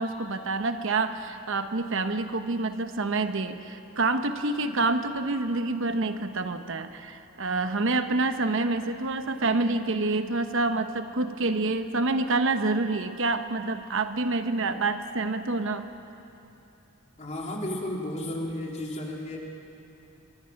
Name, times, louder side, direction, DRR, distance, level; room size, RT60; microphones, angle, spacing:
voice 1, 0.0-15.9, right 3 dB, 60° right, 8 dB, 1.0 m, -27 dB
voice 2, 17.2-19.4, left 1 dB, 35° left, -1 dB, 3.2 m, -33 dB
24.5 x 23.0 x 5.9 m, 2.8 s
head